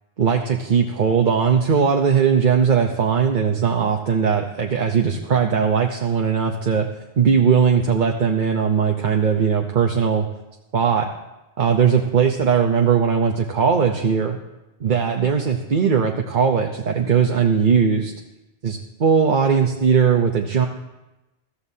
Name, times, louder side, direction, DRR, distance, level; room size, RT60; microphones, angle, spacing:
voice 1, 0.2-6.9 7.2-10.3 10.7-11.1 11.6-14.4 14.8-18.1 18.6-20.7, right 6 dB, 50° right, 3 dB, 0.9 m, -19 dB
21.5 x 14.5 x 2.8 m, 1.0 s
omnidirectional pair, 1.1 m